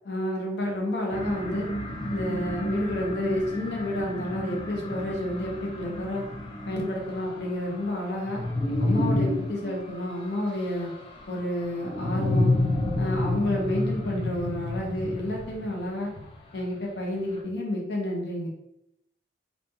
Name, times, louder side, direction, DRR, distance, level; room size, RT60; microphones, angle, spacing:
voice 1, 0.1-1.7 2.1-6.3 6.7-8.4 8.8-10.9 11.3-12.6 13.0-16.1 16.5-18.5, left 1 dB, 70° left, -1 dB, 0.7 m, -30 dB
sound 1, 1.1-16.6, left 1 dB, 30° left, 0.5 m, -30 dB
3.1 x 2.2 x 2.6 m, 0.80 s
head